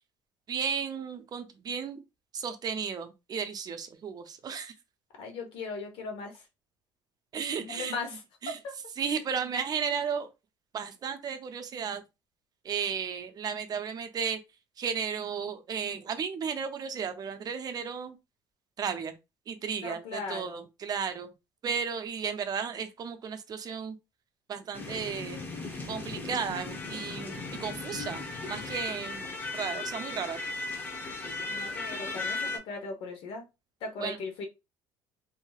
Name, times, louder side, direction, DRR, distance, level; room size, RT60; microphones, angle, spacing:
voice 1, 0.5-2.0 2.3-4.7 7.3-8.0 8.4-8.6 9.0-10.3 10.7-12.0 12.6-14.4 14.8-18.1 18.8-19.1 19.5-21.3 21.6-24.0 24.5-25.4 25.9-29.2 29.5-30.4 34.0-34.2, right 6 dB, 40° right, 0.6 m, -34 dB
voice 2, 5.2-6.4 7.6-8.7 19.8-20.7 31.5-33.4 33.8-34.5, left 3 dB, 65° left, 1.1 m, -38 dB
sound 1, 24.7-32.6, left 3 dB, 20° left, 0.8 m, -37 dB
3.0 x 2.7 x 2.3 m
supercardioid pair, 90°, 10 cm